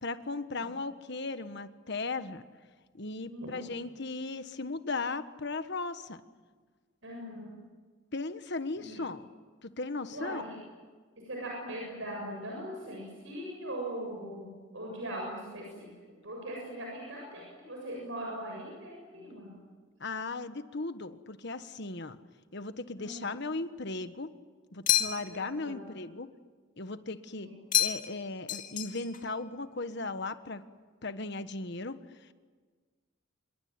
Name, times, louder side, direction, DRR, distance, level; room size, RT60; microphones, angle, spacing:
voice 1, 0.0-2.4 2.9-6.2 8.1-9.3 9.6-10.4 20.0-22.2 22.5-24.3 24.7-26.3 26.8-27.5 27.8-30.6 31.0-32.3, left 3 dB, 55° left, 10 dB, 1.4 m, -37 dB
voice 2, 3.3-3.7 7.0-7.6 8.8-9.0 10.1-10.6 11.2-15.9 16.2-19.5 23.0-23.2 25.3-25.8 27.4-27.5, right 1 dB, 65° right, -1 dB, 7.4 m, -40 dB
sound 1, 24.9-25.5 27.7-28.2 28.5-29.2, left 11 dB, 40° left, 2.1 m, -29 dB
27.0 x 22.5 x 9.7 m, 1.5 s
head